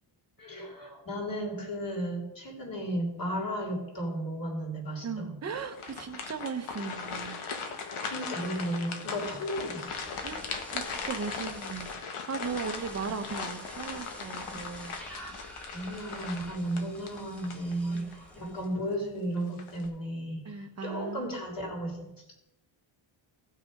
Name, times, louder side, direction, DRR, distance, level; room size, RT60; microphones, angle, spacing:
voice 1, 0.4-5.4 8.0-9.9 13.0-13.1 15.0-15.3 15.7-22.2, right 1 dB, 40° left, 0 dB, 3.4 m, -34 dB
voice 2, 5.0-7.4 10.2-15.0 17.9-18.1 20.4-21.3, right 5 dB, 30° right, 8 dB, 0.9 m, -38 dB
sound 1, 5.5-18.2 18.6-18.8 19.4-19.9, left 5 dB, 80° left, 1.5 m, -39 dB
sound 2, 9.9-11.9 12.4-19.0 19.3-19.9, equal, 5° left, 1.4 m, -48 dB
16.0 x 6.2 x 5.3 m, 0.92 s
wide cardioid pair, 135°, 49 cm